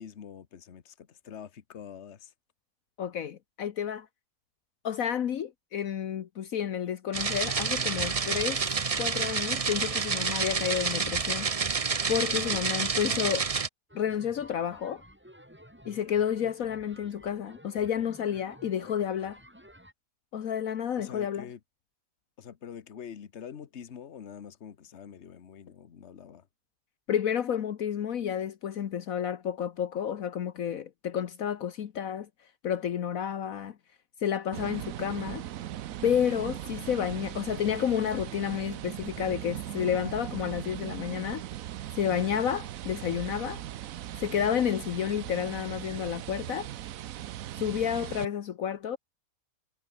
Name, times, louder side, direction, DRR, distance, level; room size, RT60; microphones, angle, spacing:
voice 1, 0.0-2.3 12.5-12.6 13.0-13.2 21.0-21.6 22.4-26.5, left 8 dB, 50° left, 1.4 m, -45 dB
voice 2, 3.0-4.1 4.8-8.6 9.0-11.5 12.1-13.5 13.9-15.0 15.8-19.4 20.3-21.5 27.1-32.3 32.6-33.8 34.2-35.4 36.0-41.4 41.9-43.6 44.2-46.7 47.6-49.0, left 9 dB, 70° left, 1.4 m, -30 dB
sound 1, 7.1-13.7, right 5 dB, 30° right, 0.8 m, -29 dB
sound 2, 13.9-19.9, equal, 5° right, 6.1 m, -53 dB
sound 3, 34.5-48.3, right 12 dB, 70° right, 1.1 m, -39 dB
omnidirectional pair, 1.6 m